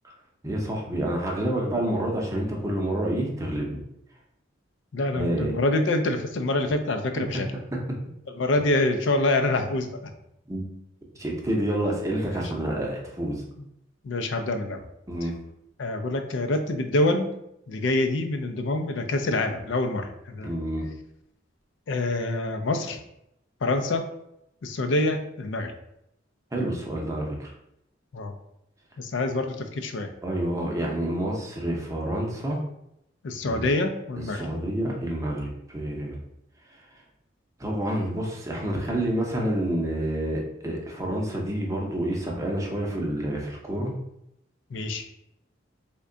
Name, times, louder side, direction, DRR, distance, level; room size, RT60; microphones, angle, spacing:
voice 1, 0.4-3.8 5.1-5.5 10.5-10.6 11.2-13.4 15.1-15.3 20.4-20.9 26.5-27.5 30.2-32.6 33.4-33.6 34.3-36.2 36.7-36.8 37.6-43.9, right 1 dB, 15° right, -1 dB, 0.6 m, -28 dB
voice 2, 4.9-7.5 8.4-10.1 14.0-14.8 15.8-17.3 17.7-20.5 21.9-23.0 23.6-24.1 24.6-25.7 28.1-28.3 29.0-30.1 33.2-34.5 44.7-45.0, left 2 dB, 70° left, 6 dB, 0.4 m, -26 dB
3.5 x 2.2 x 3.7 m, 0.81 s
head